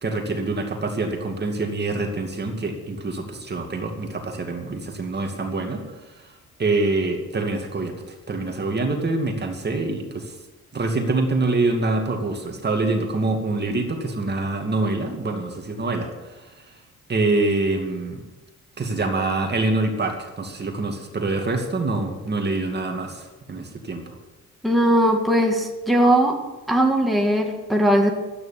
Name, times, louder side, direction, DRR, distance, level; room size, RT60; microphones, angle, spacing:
voice 1, 0.0-5.8 6.6-10.3 10.7-16.3 17.1-18.2 18.8-24.1, right 2 dB, 35° right, 3 dB, 2.4 m, -25 dB
voice 2, 24.6-26.4 26.7-28.1, right 1 dB, ahead, 0 dB, 2.3 m, -19 dB
12.5 x 9.5 x 9.1 m, 1.1 s
cardioid pair, 90°, 30 cm